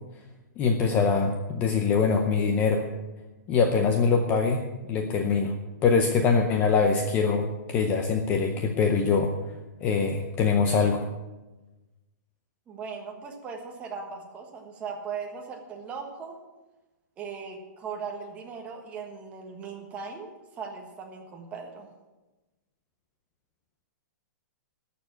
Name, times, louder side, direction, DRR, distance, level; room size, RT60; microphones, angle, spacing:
voice 1, 0.6-2.8 3.5-4.6 4.9-5.6 5.8-9.3 9.8-11.0, left 5 dB, 15° left, 5 dB, 0.6 m, -23 dB
voice 2, 12.7-16.4 17.2-21.9, right 5 dB, 15° right, 1 dB, 1.5 m, -38 dB
13.5 x 6.9 x 8.7 m, 1.1 s
hypercardioid pair, 175°, 10 cm